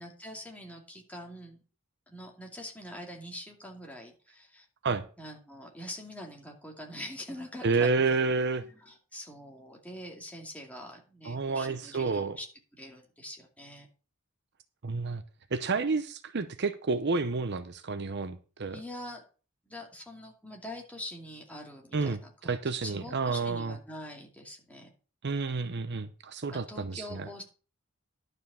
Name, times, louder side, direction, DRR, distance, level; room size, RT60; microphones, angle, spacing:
voice 1, 0.0-1.6 2.1-4.7 5.2-8.0 8.6-12.4 12.7-13.9 18.7-19.2 19.7-24.9 26.5-27.4, left 1 dB, 5° left, 0 dB, 2.5 m, -44 dB
voice 2, 7.6-8.6 11.2-12.4 14.8-15.2 15.5-18.8 21.9-23.8 25.2-27.3, right 4 dB, 55° right, 10 dB, 0.7 m, -30 dB
11.5 x 5.3 x 6.8 m, 0.37 s
head